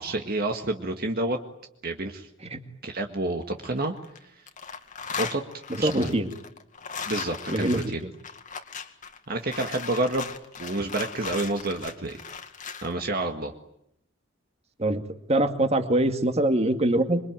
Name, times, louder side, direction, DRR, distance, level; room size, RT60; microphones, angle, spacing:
voice 1, 0.0-1.4 1.8-2.3 2.8-3.9 5.2-5.4 5.8-6.1 7.1-8.0 9.3-10.3 10.6-12.2 12.8-13.5, right 2 dB, 50° right, 4 dB, 1.8 m, -29 dB
sound 1, 3.4-4.2 4.5-12.9, left 6 dB, 40° left, 2.2 m, -37 dB
voice 2, 5.8-6.3 7.5-8.1 14.8-15.0 15.3-17.2, right 1 dB, 30° right, 7 dB, 2.3 m, -23 dB
26.5 x 23.5 x 9.1 m, 0.78 s
head